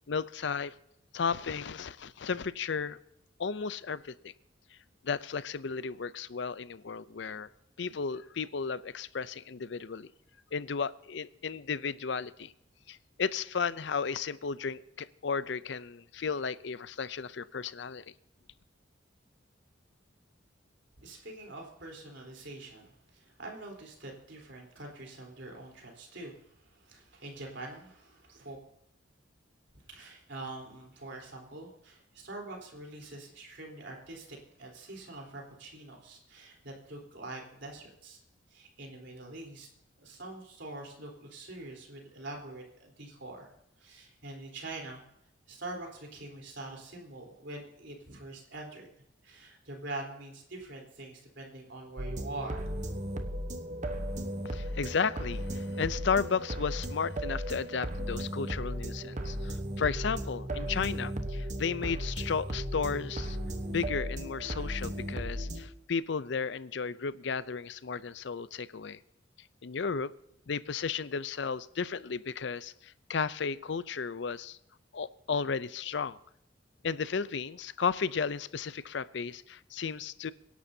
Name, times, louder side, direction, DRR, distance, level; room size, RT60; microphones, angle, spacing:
voice 1, 0.1-0.7 1.1-3.0 3.4-4.3 5.0-7.5 7.8-10.1 10.5-12.5 12.9-18.0 54.4-63.4 63.7-69.0 69.6-70.1 70.5-74.6 74.9-76.2 76.8-80.3, left 5 dB, 65° left, 17 dB, 0.5 m, -34 dB
voice 2, 21.0-28.6 29.9-38.2 38.5-39.7 40.0-43.5 43.8-45.0 45.5-48.9 49.2-52.7, right 2 dB, 65° right, 1 dB, 3.8 m, -44 dB
sound 1, 52.0-65.6, equal, 40° right, 1.1 m, -36 dB
25.0 x 11.0 x 2.8 m, 0.76 s
head